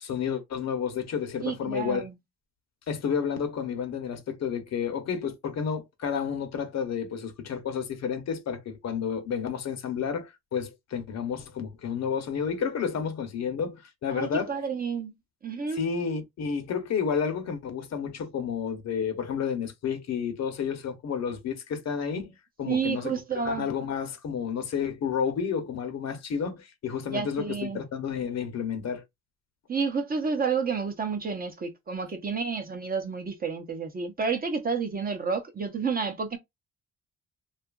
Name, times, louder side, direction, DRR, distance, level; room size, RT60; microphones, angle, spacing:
voice 1, 0.0-2.0 2.9-14.5 15.7-22.3 22.6-23.1 23.4-29.0, left 7 dB, 60° left, 0.8 m, -31 dB
voice 2, 1.4-2.1 14.1-15.1 15.4-15.8 22.7-23.7 27.1-27.8 29.7-36.4, right 5 dB, 30° right, 0.6 m, -30 dB
2.7 x 2.4 x 2.3 m
cardioid pair, 105°, 30 cm